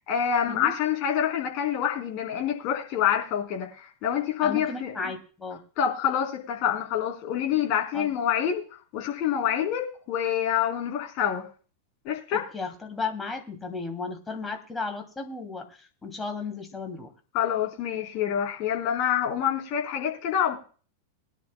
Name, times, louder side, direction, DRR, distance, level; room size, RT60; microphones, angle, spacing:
voice 1, 0.0-5.1 5.8-8.6 8.9-11.5 12.0-12.5 17.3-20.6, left 9 dB, 40° left, 2 dB, 3.9 m, -27 dB
voice 2, 4.4-5.6 7.9-8.1 12.3-17.1, left 4 dB, 10° left, 4 dB, 2.8 m, -34 dB
22.5 x 11.0 x 2.3 m, 0.39 s
figure-of-eight pair, 90°, 0 cm